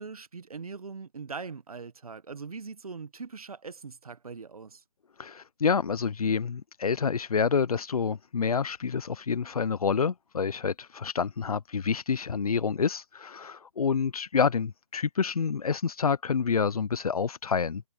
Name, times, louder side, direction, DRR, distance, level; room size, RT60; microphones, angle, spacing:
voice 1, 0.0-4.8, right 5 dB, 80° right, 1.4 m, -41 dB
voice 2, 5.2-17.8, left 6 dB, 85° left, 0.7 m, -28 dB
hypercardioid pair, 170°, 18 cm